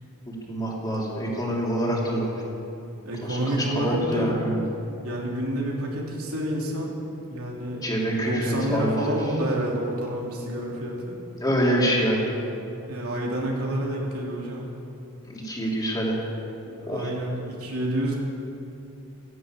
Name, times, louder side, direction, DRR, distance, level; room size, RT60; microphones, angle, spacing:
voice 1, 0.3-2.4 3.2-3.6 3.8-4.6 7.8-9.2 11.4-12.3 15.3-16.2 16.9-17.1, equal, 20° left, -4 dB, 3.0 m, -26 dB
voice 2, 3.0-4.3 5.0-6.9 7.3-11.2 12.9-14.7 16.6-18.2, right 1 dB, 85° right, -2 dB, 3.3 m, -29 dB
14.5 x 11.0 x 8.9 m, 2.8 s
head